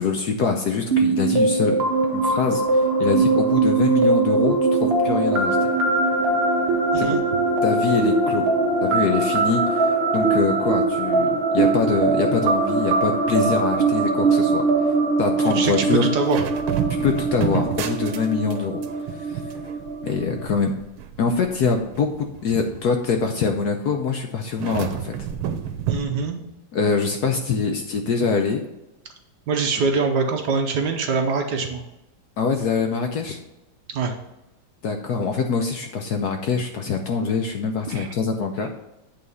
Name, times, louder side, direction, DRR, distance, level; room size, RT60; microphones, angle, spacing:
voice 1, 0.0-1.8 2.1-5.7 7.0-7.2 7.6-8.5 8.8-16.0 17.0-18.8 19.2-19.4 20.0-20.7 21.2-25.1 26.7-28.6 32.4-33.4 34.8-38.7, left 5 dB, 65° left, 4 dB, 1.0 m, -24 dB
sound 1, 0.9-20.4, right 3 dB, 35° right, 1.1 m, -21 dB
voice 2, 15.5-16.4 25.9-26.4 29.5-31.8 33.9-34.1 37.9-38.1, right 4 dB, 60° right, 4 dB, 1.3 m, -24 dB
sound 2, 16.0-18.6 18.8-23.3 24.5-26.0, right 9 dB, 85° right, 1.6 m, -31 dB
8.7 x 3.9 x 5.5 m, 0.97 s
omnidirectional pair, 2.2 m